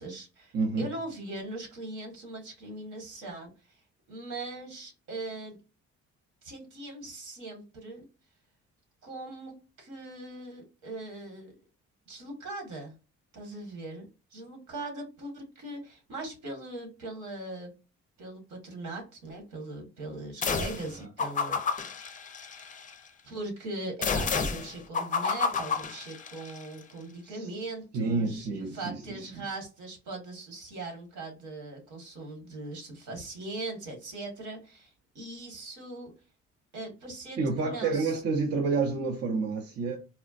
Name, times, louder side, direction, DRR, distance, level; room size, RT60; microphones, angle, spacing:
voice 1, 0.0-3.8 4.1-5.6 6.4-8.1 9.0-11.5 12.1-12.9 13.3-17.7 18.2-22.2 23.2-36.1 36.7-38.2, right 2 dB, 75° right, 1.6 m, -40 dB
voice 2, 0.5-0.9 20.9-21.1 27.2-27.5 27.9-29.4 37.4-40.0, right 4 dB, 55° right, 0.7 m, -29 dB
sound 1, 20.4-20.9 21.2-22.9 24.0-26.6, left 5 dB, 25° left, 0.4 m, -30 dB
4.2 x 2.1 x 2.4 m
cardioid pair, 90°, 30 cm